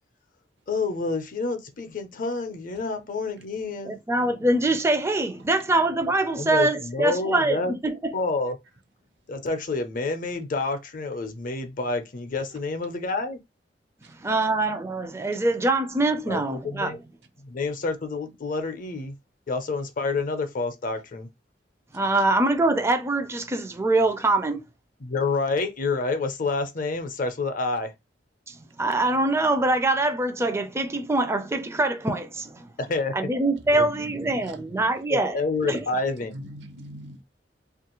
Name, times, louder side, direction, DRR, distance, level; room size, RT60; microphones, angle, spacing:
voice 1, 0.7-4.0 6.4-7.7 8.1-8.6 9.3-13.4 16.3-16.4 16.6-17.0 17.4-19.1 19.5-21.3 25.0-27.9 32.8-33.1 33.7-33.9 35.1-36.5, left 3 dB, 50° left, 0.5 m, -28 dB
voice 2, 3.8-8.1 14.2-16.9 21.9-24.6 28.5-32.7 33.1-35.8, right 2 dB, 15° right, 0.4 m, -24 dB
voice 3, 33.7-34.8 36.3-37.2, equal, 75° right, 0.8 m, -41 dB
2.9 x 2.4 x 2.9 m
head